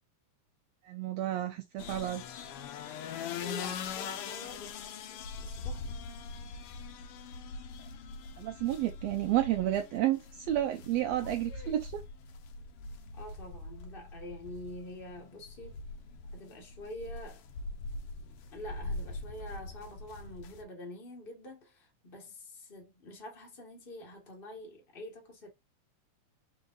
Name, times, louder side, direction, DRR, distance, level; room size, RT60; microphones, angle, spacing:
voice 1, 0.8-2.2 8.4-12.0, right 13 dB, 85° right, 1.5 m, -31 dB
sound 1, 1.8-20.6, left 4 dB, 80° left, 1.3 m, -42 dB
voice 2, 3.4-4.8 5.1-5.8 13.1-15.8 16.3-17.4 18.5-25.5, left 1 dB, 35° left, 0.8 m, -46 dB
5.0 x 4.0 x 2.5 m
omnidirectional pair, 3.5 m